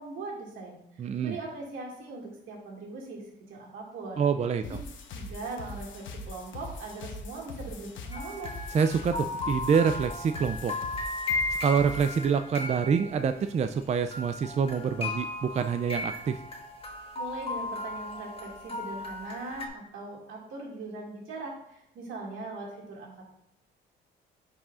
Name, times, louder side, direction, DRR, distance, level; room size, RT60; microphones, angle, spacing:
voice 1, 0.0-4.2 4.6-4.8 5.1-8.5 17.1-23.3, right 3 dB, 80° right, -2 dB, 2.2 m, -40 dB
voice 2, 1.0-1.4 4.2-4.8 8.7-10.7 11.6-16.4, right 6 dB, 35° right, 9 dB, 0.4 m, -26 dB
sound 1, 4.6-12.2, left 2 dB, 75° left, 1.0 m, -42 dB
sound 2, 8.1-13.8 14.1-19.7, left 2 dB, 30° left, 1.4 m, -35 dB
10.0 x 4.9 x 2.5 m, 0.80 s
cardioid pair, 90°, 20 cm